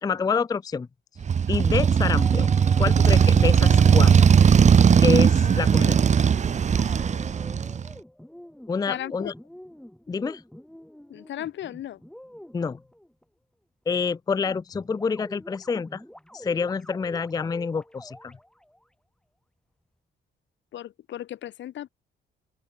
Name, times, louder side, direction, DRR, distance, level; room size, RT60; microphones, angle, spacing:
voice 1, 0.0-0.9 1.5-2.5 2.8-4.1 5.0-6.0 8.7-9.3 10.1-10.4 12.5-12.8 13.9-16.0 16.3-18.3, left 5 dB, 20° left, 0.4 m, -27 dB
Motorcycle, 1.2-7.9, right 7 dB, 35° right, 0.7 m, -18 dB
sound 1, 2.1-5.2 6.8-13.2 14.4-18.9, equal, 5° left, 5.1 m, -46 dB
voice 2, 5.4-6.0 8.9-9.3 11.1-12.0 20.7-21.9, left 12 dB, 65° left, 1.0 m, -36 dB
open air
cardioid pair, 90°, 20 cm